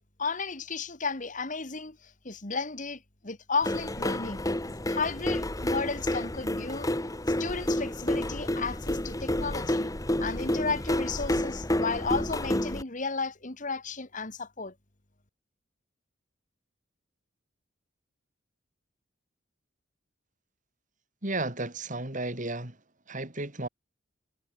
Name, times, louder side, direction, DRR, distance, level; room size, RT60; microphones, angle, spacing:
voice 1, 0.2-4.4 4.9-6.9 7.4-9.9 10.2-14.7, left 4 dB, 40° left, 2.0 m, -33 dB
sound 1, 3.6-12.8, left 1 dB, 20° left, 1.5 m, -30 dB
voice 2, 21.2-22.8 23.1-23.7, right 2 dB, 40° right, 3.8 m, -33 dB
head